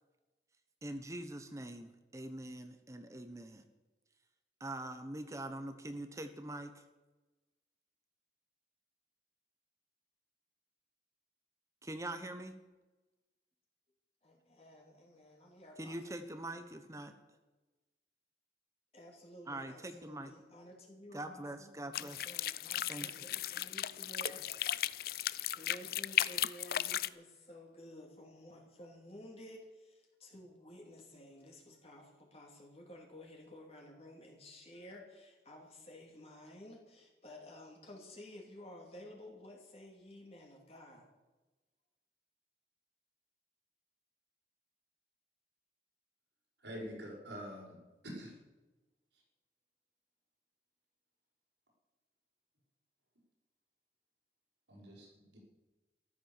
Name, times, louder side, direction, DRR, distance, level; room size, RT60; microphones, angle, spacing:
voice 1, 0.8-3.6 4.6-6.7 11.8-12.5 15.8-17.1 19.5-20.3 21.1-22.3 22.9-23.3, right 1 dB, 15° right, 8 dB, 0.9 m, -43 dB
voice 2, 14.2-16.2 18.9-24.4 25.5-41.1, left 1 dB, 35° left, 0 dB, 2.7 m, -53 dB
sound 1, 21.9-27.1, left 11 dB, 55° left, 0.5 m, -36 dB
voice 3, 46.6-47.8 48.0-48.3 54.7-55.4, equal, 90° right, -1 dB, 6.1 m, -46 dB
14.0 x 12.5 x 7.2 m, 1.1 s
head